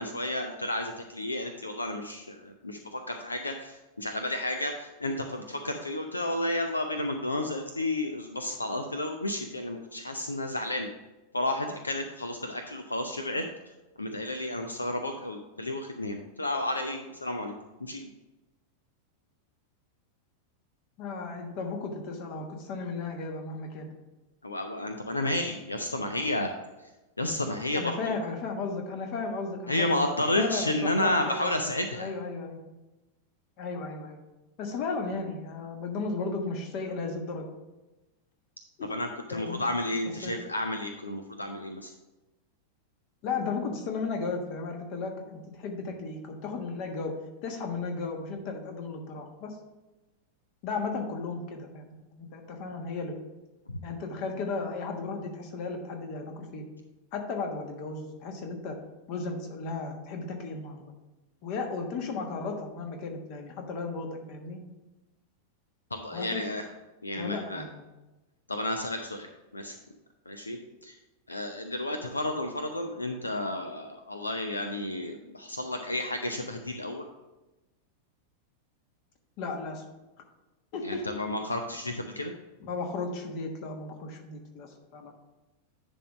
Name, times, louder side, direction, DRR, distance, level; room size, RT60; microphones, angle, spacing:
voice 1, 0.0-10.9 11.3-13.4 14.0-17.5 17.8-18.1 24.4-26.5 27.2-28.2 29.7-32.1 38.9-41.9 53.7-53.8 65.9-66.6 67.0-67.6 68.5-69.3 69.5-69.8 70.3-71.0 71.3-77.1 80.8-82.3, left 1 dB, 80° left, 6 dB, 0.5 m, -31 dB
voice 2, 21.0-23.9 27.7-30.1 30.3-32.6 33.6-34.2 34.6-37.5 38.8-38.9 39.3-39.6 40.2-40.4 43.2-47.2 47.4-49.6 50.6-53.2 53.8-56.7 57.1-58.8 59.1-60.9 61.4-64.6 66.1-66.4 67.2-67.8 79.4-79.8 80.7-81.0 82.6-85.1, left 4 dB, 45° left, 4 dB, 1.3 m, -35 dB
10.0 x 3.6 x 5.1 m, 1.1 s
figure-of-eight pair, 90°, 0 cm